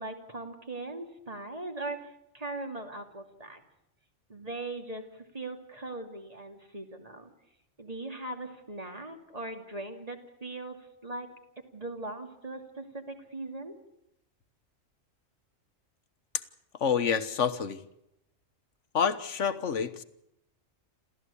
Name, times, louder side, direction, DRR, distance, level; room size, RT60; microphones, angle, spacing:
voice 1, 0.0-3.6 4.3-7.3 7.8-10.8 11.0-11.3 11.7-13.7, right 2 dB, 30° right, 4 dB, 2.7 m, -40 dB
voice 2, 16.8-17.8 18.9-20.0, left 7 dB, 65° left, 11 dB, 1.5 m, -28 dB
28.5 x 14.5 x 8.4 m, 0.83 s
omnidirectional pair, 1.4 m